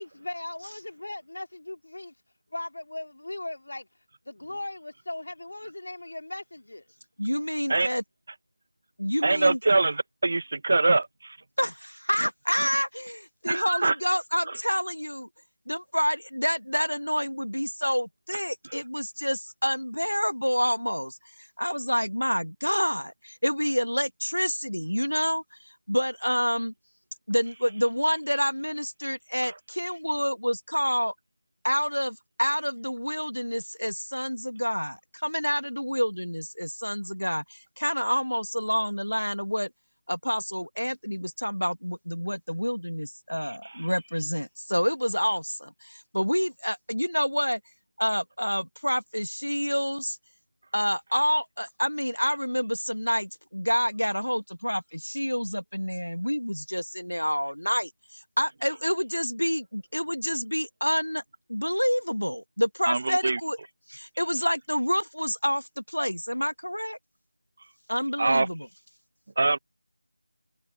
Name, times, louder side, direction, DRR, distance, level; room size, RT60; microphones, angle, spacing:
voice 1, 0.0-2.1 2.5-3.9 4.2-6.8, left 2 dB, 55° left, 3.2 m, -38 dB
voice 2, 7.2-8.0 9.0-9.6 11.6-15.3 15.7-21.2 21.6-25.6 25.9-26.7 27.3-31.1 31.6-39.7 40.1-47.6 48.0-50.2 50.7-57.9 58.4-61.2 61.5-63.6 63.9-67.0 67.9-68.7, equal, 85° left, 1.4 m, -28 dB
voice 3, 9.2-11.4 13.4-13.9 14.5-14.6 43.6-43.8 62.9-63.4 68.2-68.5 69.4-69.6, right 3 dB, 40° right, 1.3 m, -24 dB
figure-of-eight pair, 165°, 0 cm